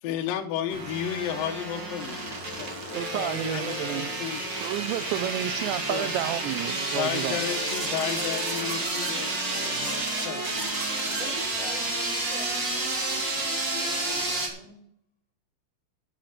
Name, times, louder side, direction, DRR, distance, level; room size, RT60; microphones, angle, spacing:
voice 1, 0.0-2.8 3.1-4.4 5.7-6.1 6.9-10.8, left 10 dB, 80° left, 2.0 m, -33 dB
sound 1, 0.7-14.5, right 2 dB, 35° right, 1.9 m, -30 dB
sound 2, 2.4-8.8, left 3 dB, 45° left, 2.9 m, -42 dB
voice 2, 2.9-4.1 4.6-7.4, right 14 dB, 80° right, 2.6 m, -31 dB
voice 3, 11.2-14.8, left 1 dB, ahead, 5.6 m, -45 dB
11.5 x 8.8 x 5.7 m
omnidirectional pair, 5.4 m